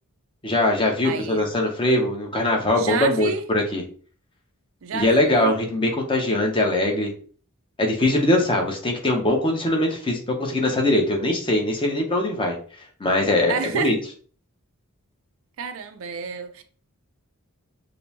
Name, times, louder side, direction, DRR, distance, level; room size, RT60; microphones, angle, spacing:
voice 1, 0.4-3.8 4.9-7.1 7.8-12.6 13.0-13.9, left 1 dB, 25° left, 0.7 m, -21 dB
voice 2, 1.0-1.5 2.7-3.5 4.8-5.6 13.5-14.0 15.6-16.6, right 5 dB, 65° right, 0.4 m, -29 dB
5.1 x 2.0 x 2.8 m
head